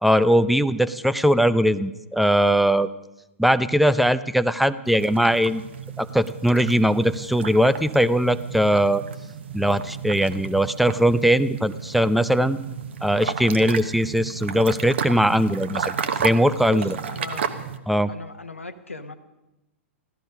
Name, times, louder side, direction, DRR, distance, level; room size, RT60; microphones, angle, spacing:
voice 1, 0.0-2.9 3.4-5.6 6.0-9.0 9.5-12.6 13.0-17.0 17.9-18.1, equal, ahead, 15 dB, 0.4 m, -20 dB
sound 1, 4.9-17.8, right 7 dB, 60° right, 1.0 m, -33 dB
voice 2, 16.7-17.5 18.1-19.1, left 3 dB, 85° left, 8 dB, 1.0 m, -38 dB
15.5 x 13.0 x 5.3 m, 0.97 s
figure-of-eight pair, 105°, 7 cm